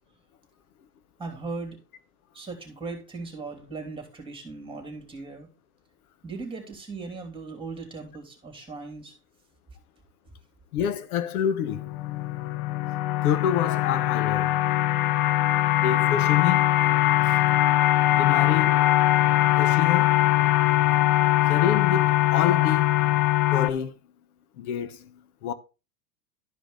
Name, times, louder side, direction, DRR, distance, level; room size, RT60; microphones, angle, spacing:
voice 1, 1.2-1.8 2.3-5.5 6.2-9.1 19.7-19.9 20.4-20.9, right 3 dB, 10° right, 2.9 m, -38 dB
voice 2, 10.7-11.9 13.2-14.5 15.8-16.6 17.2-17.4 18.2-18.9 19.6-20.2 21.5-23.0 23.5-24.0 24.6-25.5, left 9 dB, 60° left, 1.3 m, -27 dB
sound 1, 11.7-23.7, left 15 dB, 40° left, 0.7 m, -22 dB
12.5 x 5.1 x 3.8 m
hypercardioid pair, 110°, 49 cm